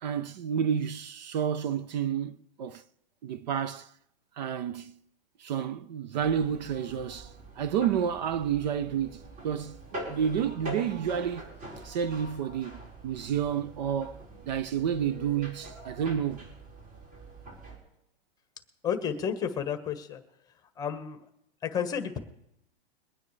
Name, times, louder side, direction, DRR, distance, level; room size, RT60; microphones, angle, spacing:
voice 1, 0.0-2.8 3.2-3.9 4.4-4.9 5.4-11.5 11.8-16.5, right 8 dB, 50° right, 0.6 m, -30 dB
sound 1, 6.2-17.8, right 1 dB, 30° right, 4.3 m, -44 dB
voice 2, 18.8-20.2 20.8-21.2 21.6-22.2, left 7 dB, 15° left, 1.2 m, -31 dB
22.5 x 9.5 x 3.2 m
hypercardioid pair, 160°, 29 cm